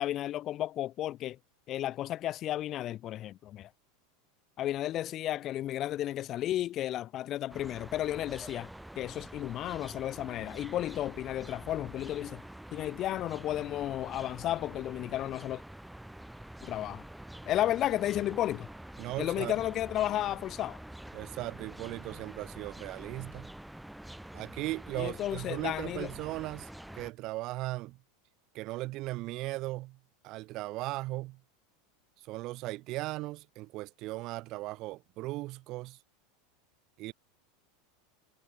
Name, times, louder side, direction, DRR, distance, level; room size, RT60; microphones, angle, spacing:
voice 1, 0.0-1.4 1.7-3.7 4.6-8.7 9.0-12.4 12.7-15.6 16.6-17.0 17.5-18.7 19.2-20.8 24.9-26.1, left 13 dB, 40° left, 0.8 m, -33 dB
sound 1, 7.5-27.1, right 1 dB, 5° right, 5.8 m, -47 dB
voice 2, 19.0-19.5 21.1-23.5 24.3-28.0 28.5-30.0 30.2-31.4 32.2-36.0 37.0-37.1, right 19 dB, 45° right, 1.3 m, -37 dB
supercardioid pair, 130°, 0 cm